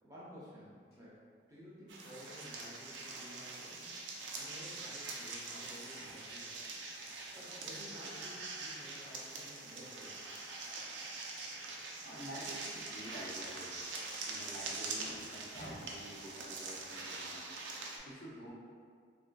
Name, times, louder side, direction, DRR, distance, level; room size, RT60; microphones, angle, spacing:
voice 1, 0.0-1.2 1.5-6.6 7.3-10.3 15.5-15.7, equal, 20° right, -8 dB, 0.6 m, -53 dB
sound 1, 1.9-18.0, right 3 dB, 80° right, 0.4 m, -44 dB
voice 2, 12.0-13.8 14.2-17.5 17.8-18.5, equal, 65° left, -9 dB, 0.7 m, -49 dB
3.5 x 2.5 x 2.2 m, 2.1 s
head